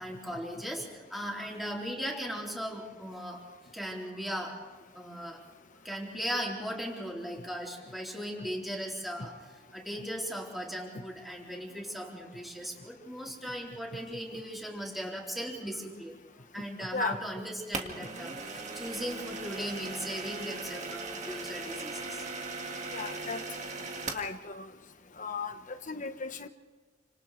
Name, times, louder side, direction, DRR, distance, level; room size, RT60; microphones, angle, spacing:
voice 1, 0.0-3.4 3.7-4.6 4.9-5.4 5.8-16.2 16.5-22.3, equal, ahead, 4.0 m, -38 dB
sound 1, 17.7-24.3, right 3 dB, 40° right, 2.0 m, -38 dB
voice 2, 22.9-23.4 24.1-24.7 25.2-26.5, left 5 dB, 45° left, 1.2 m, -36 dB
30.0 x 27.0 x 3.3 m
head